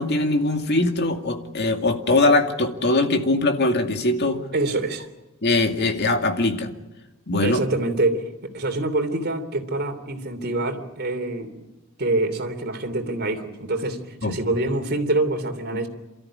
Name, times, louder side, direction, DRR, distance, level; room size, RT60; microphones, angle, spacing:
voice 1, 0.0-4.4 5.4-6.7 7.3-7.6 14.2-14.4, left 2 dB, 50° left, 5 dB, 2.3 m, -21 dB
voice 2, 4.5-5.1 7.4-11.7 12.0-15.9, right 2 dB, 50° right, 6 dB, 3.1 m, -25 dB
28.5 x 14.0 x 9.9 m, 1.0 s
head